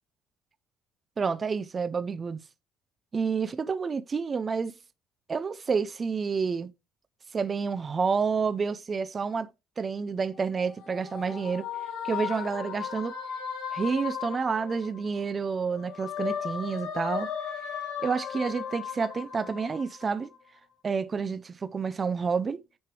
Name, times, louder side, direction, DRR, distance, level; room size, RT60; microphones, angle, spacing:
voice 1, 1.2-2.4 3.1-4.7 5.3-6.7 7.3-9.5 9.8-11.7 12.0-13.1 13.7-17.3 18.0-20.3 20.8-22.6, right 5 dB, 25° right, 0.5 m, -29 dB
sound 1, 10.3-15.3 15.7-20.5, left 8 dB, 90° left, 4.5 m, -36 dB
9.4 x 3.3 x 4.4 m
cardioid pair, 140°, 0 cm